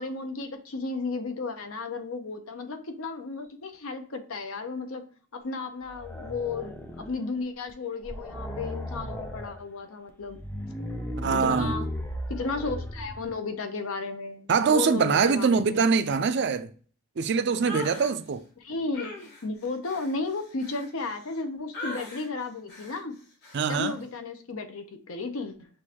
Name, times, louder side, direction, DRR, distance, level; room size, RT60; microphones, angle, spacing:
voice 1, 0.0-5.0 5.3-10.4 11.4-11.9 12.3-15.8 16.2-16.3 18.6-23.2 23.7-25.7, left 3 dB, 80° left, 0.8 m, -34 dB
sound 1, 5.8-7.3 7.7-7.8 8.0-9.6 10.2-13.3, equal, 10° left, 0.5 m, -36 dB
voice 2, 11.2-11.8 14.5-16.7 17.2-18.4 23.5-24.0, right 5 dB, 55° right, 0.4 m, -23 dB
sound 2, 17.6-18.1 18.9-21.4 21.7-22.3 22.7-23.0 23.4-23.7, left 1 dB, 50° left, 1.4 m, -40 dB
6.2 x 2.5 x 2.8 m
head